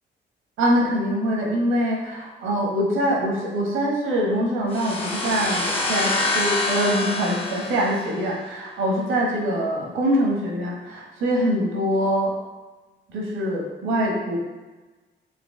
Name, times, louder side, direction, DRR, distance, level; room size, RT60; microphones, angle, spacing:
voice 1, 0.6-12.3 13.1-14.4, equal, 90° right, -1 dB, 1.2 m, -24 dB
sound 1, 4.7-8.4, left 2 dB, 25° left, 1.4 m, -26 dB
4.7 x 2.8 x 3.7 m, 1.2 s
cardioid pair, 70°, 21 cm